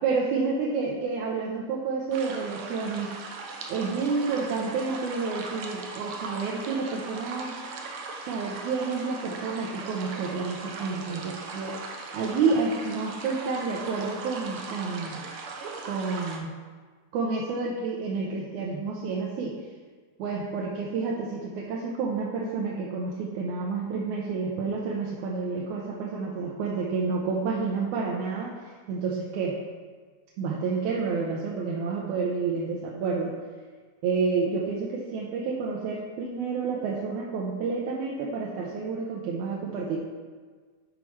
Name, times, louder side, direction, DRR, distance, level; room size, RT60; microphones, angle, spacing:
voice 1, 0.0-3.2 3.7-7.6 8.2-15.2 15.8-16.5 17.1-19.5 20.2-29.6 30.4-33.3 34.0-40.0, right 4 dB, 90° right, -3 dB, 2.2 m, -29 dB
sound 1, 2.1-16.4, right 4 dB, 70° right, 1.3 m, -39 dB
8.2 x 4.5 x 5.6 m, 1.5 s
omnidirectional pair, 3.3 m